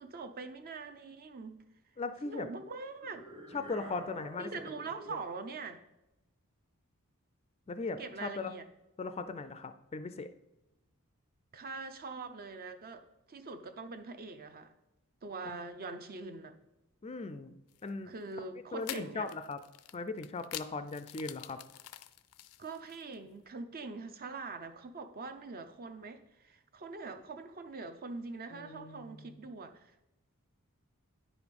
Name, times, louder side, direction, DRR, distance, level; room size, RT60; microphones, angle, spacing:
voice 1, 0.0-1.7 2.2-3.3 4.4-5.8 8.0-8.6 11.5-14.7 15.2-16.5 18.0-19.3 22.6-30.0, right 4 dB, 40° right, 0.6 m, -43 dB
voice 2, 2.0-2.5 3.5-4.5 7.7-8.5 9.0-10.3 15.4-15.7 17.0-17.6 17.8-18.1 18.7-19.6 19.9-21.6 28.5-29.4, left 3 dB, 30° left, 0.4 m, -38 dB
sound 1, 3.0-5.3, right 1 dB, 25° right, 1.0 m, -49 dB
sound 2, 17.7-17.9 18.8-23.2, left 13 dB, 85° left, 0.4 m, -46 dB
9.7 x 5.0 x 5.2 m
head